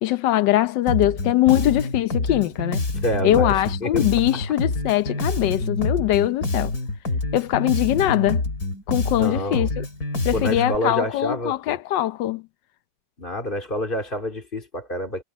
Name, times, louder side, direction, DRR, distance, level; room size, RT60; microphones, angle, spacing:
voice 1, 0.0-2.8 3.2-6.7 7.3-8.4 8.9-9.8 10.2-12.4, left 14 dB, 90° left, 1.4 m, -22 dB
Bass guitar, 0.9-10.8, left 2 dB, 55° left, 3.8 m, -26 dB
voice 2, 3.0-4.1 9.2-9.7 10.3-11.8 13.2-15.2, left 1 dB, 30° left, 3.2 m, -28 dB
omnidirectional pair, 1.9 m